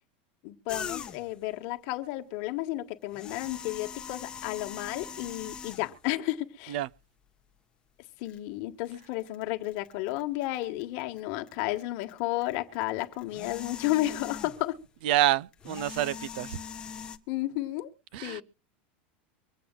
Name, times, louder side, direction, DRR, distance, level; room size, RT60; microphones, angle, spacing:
voice 1, 0.4-6.8 8.2-14.8 17.3-17.9 18.2-18.4, left 17 dB, 50° left, 1.3 m, -32 dB
sound 1, 0.7-1.4 3.0-6.1 6.9-7.0 8.2-8.4 8.8-11.2 11.5-14.8 15.5-17.2, left 6 dB, 15° left, 0.9 m, -42 dB
voice 2, 15.0-16.6 18.1-18.4, right 13 dB, 60° right, 0.5 m, -27 dB
24.0 x 8.6 x 2.2 m
supercardioid pair, 165°, 6 cm